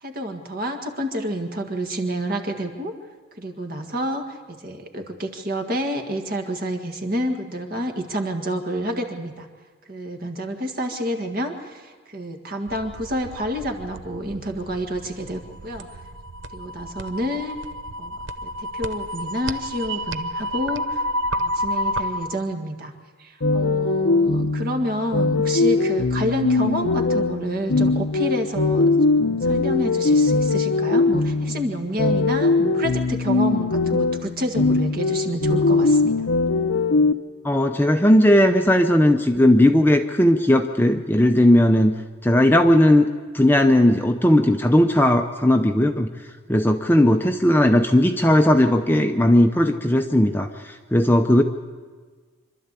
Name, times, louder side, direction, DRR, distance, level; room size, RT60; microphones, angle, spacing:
voice 1, 0.0-2.9 3.4-9.5 9.9-15.9 16.5-17.6 18.0-18.2 18.4-21.0 21.4-22.9 23.2-28.9 29.1-36.2, equal, 45° right, 5 dB, 1.8 m, -29 dB
sound 1, 12.7-22.4, equal, 65° right, 0.8 m, -30 dB
sound 2, 23.4-37.1, left 3 dB, 80° left, 0.8 m, -21 dB
voice 2, 37.4-41.9 42.2-43.1 43.3-46.1 46.5-51.4, left 1 dB, 10° left, 5 dB, 0.6 m, -17 dB
26.0 x 12.5 x 8.3 m, 1.5 s
head